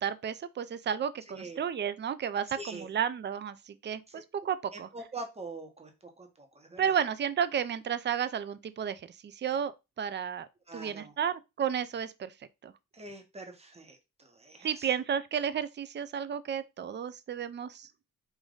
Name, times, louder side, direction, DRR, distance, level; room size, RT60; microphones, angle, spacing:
voice 1, 0.0-4.9 6.8-9.7 10.0-10.5 10.7-12.3 12.6-12.7 14.6-17.9, right 8 dB, 35° right, 0.4 m, -32 dB
voice 2, 1.3-1.6 2.5-2.9 4.1-4.2 4.7-6.9 10.7-11.1 12.9-14.9, right 2 dB, 20° right, 1.0 m, -44 dB
5.1 x 2.5 x 3.8 m
wide cardioid pair, 140°, 34 cm